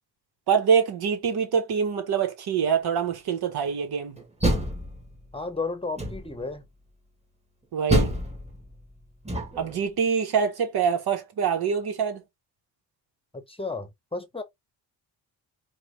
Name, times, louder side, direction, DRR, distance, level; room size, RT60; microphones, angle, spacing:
voice 1, 0.5-4.2 7.7-8.1 9.6-12.2, right 6 dB, 75° right, 1.4 m, -25 dB
Door, 4.2-5.4 6.0-6.5 7.9-9.8, equal, 15° right, 1.6 m, -27 dB
voice 2, 5.3-6.6 13.3-14.4, left 3 dB, 15° left, 0.8 m, -33 dB
4.8 x 2.5 x 3.1 m
cardioid pair, 100°, 39 cm